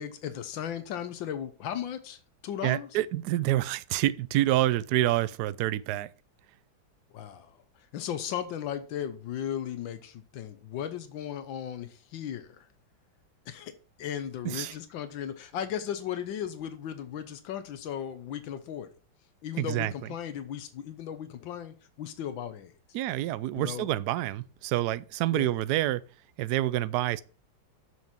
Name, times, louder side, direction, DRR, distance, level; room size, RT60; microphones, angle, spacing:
voice 1, 0.0-2.9 7.1-12.7 13.5-13.7 14.0-18.9 19.4-22.8 23.5-23.9 25.3-25.5, left 9 dB, 90° left, 1.6 m, -36 dB
voice 2, 2.6-6.1 14.4-14.8 19.6-19.9 22.9-26.0 26.4-27.2, right 14 dB, 70° right, 1.0 m, -27 dB
7.2 x 6.3 x 5.9 m
omnidirectional pair, 2.0 m